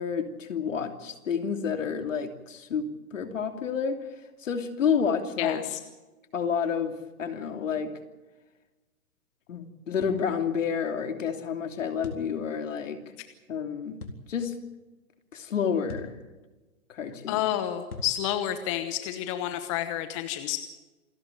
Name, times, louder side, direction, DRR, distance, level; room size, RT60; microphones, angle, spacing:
voice 1, 0.0-4.1 4.4-5.6 6.3-7.9 9.5-13.0 13.5-14.0 14.3-14.6 15.3-16.2 16.9-17.4, left 6 dB, 60° left, 6 dB, 3.0 m, -29 dB
voice 2, 5.4-5.8 17.3-20.6, left 12 dB, 20° left, 9 dB, 1.0 m, -30 dB
sound 1, 10.0-10.2 12.0-12.3 14.0-14.2 15.9-16.2 17.9-18.2, left 2 dB, 80° left, 3.9 m, -40 dB
27.5 x 13.0 x 9.0 m, 1.2 s
hypercardioid pair, 150°, 44 cm